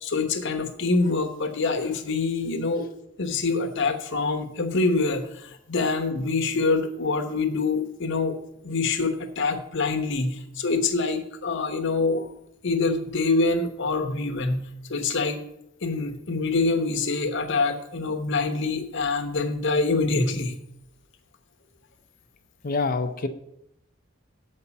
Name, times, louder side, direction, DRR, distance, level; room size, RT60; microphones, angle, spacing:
voice 1, 0.0-2.8 3.2-8.4 8.6-12.3 12.6-15.4 15.8-20.5, left 3 dB, 65° left, 5 dB, 1.0 m, -25 dB
voice 2, 22.6-23.3, left 3 dB, 45° left, 7 dB, 0.6 m, -26 dB
7.9 x 5.4 x 7.1 m, 0.77 s
head